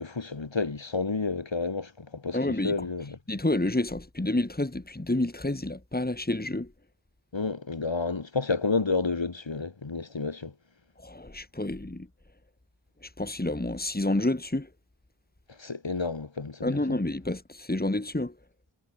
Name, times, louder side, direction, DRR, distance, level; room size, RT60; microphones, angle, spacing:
voice 1, 0.0-3.2 7.3-10.5 15.6-17.0, left 4 dB, 70° left, 7.2 m, -30 dB
voice 2, 2.3-2.7 3.3-6.7 11.0-12.1 13.0-14.7 16.6-18.3, left 1 dB, 20° left, 3.5 m, -29 dB
wide cardioid pair, 70°, 46 cm